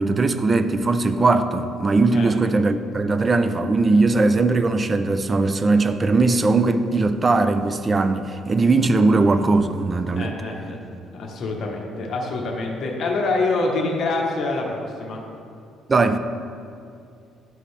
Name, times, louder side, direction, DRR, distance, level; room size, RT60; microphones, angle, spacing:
voice 1, 0.0-10.3 15.9-16.2, right 3 dB, 25° right, 10 dB, 0.3 m, -19 dB
voice 2, 10.1-10.8 11.1-15.2, left 3 dB, 50° left, 0 dB, 1.0 m, -26 dB
11.5 x 5.0 x 3.3 m, 2.4 s
cardioid pair, 145°, 0 cm